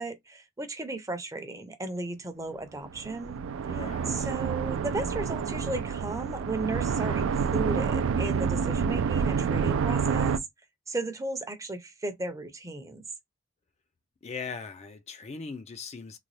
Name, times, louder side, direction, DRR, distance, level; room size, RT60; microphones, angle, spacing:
voice 1, 0.0-3.8 4.1-10.4 10.9-13.0, right 2 dB, 15° right, 0.6 m, -35 dB
sound 1, 2.9-10.4, right 6 dB, 70° right, 0.3 m, -28 dB
voice 2, 3.6-4.3 14.2-16.2, left 5 dB, 30° left, 0.4 m, -39 dB
3.9 x 2.2 x 3.1 m
head